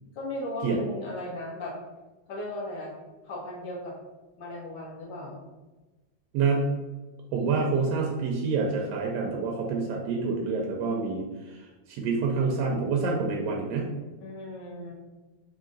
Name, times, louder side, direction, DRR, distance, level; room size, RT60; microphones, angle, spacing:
voice 1, 0.1-1.7 2.3-2.9 3.2-3.9 4.4-5.4 14.2-14.9, left 1 dB, 85° left, -4 dB, 0.9 m, -36 dB
voice 2, 6.3-6.7 7.3-11.6 11.9-13.9, right 4 dB, 80° right, 0 dB, 1.4 m, -27 dB
4.9 x 2.7 x 3.8 m, 1.2 s
omnidirectional pair, 3.3 m